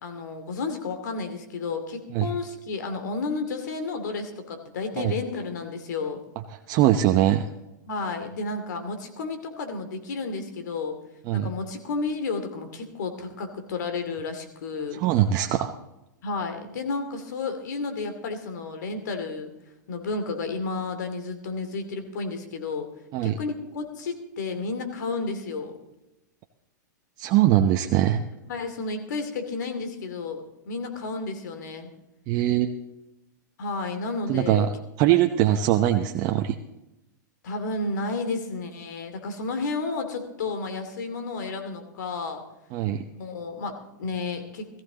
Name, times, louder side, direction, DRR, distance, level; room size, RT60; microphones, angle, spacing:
voice 1, 0.0-6.2 7.9-11.0 11.3-15.0 16.2-19.5 19.9-22.9 23.2-25.7 28.4-31.9 33.6-34.7 37.4-42.4 43.1-44.7, left 3 dB, 70° left, 7 dB, 2.5 m, -32 dB
voice 2, 6.7-7.5 11.3-11.5 15.0-15.7 23.1-23.3 27.2-28.2 32.3-32.7 34.3-34.7 35.0-36.5 42.7-43.1, right 12 dB, 45° right, 5 dB, 0.8 m, -21 dB
17.5 x 15.0 x 3.9 m, 0.95 s
hypercardioid pair, 115°, 10 cm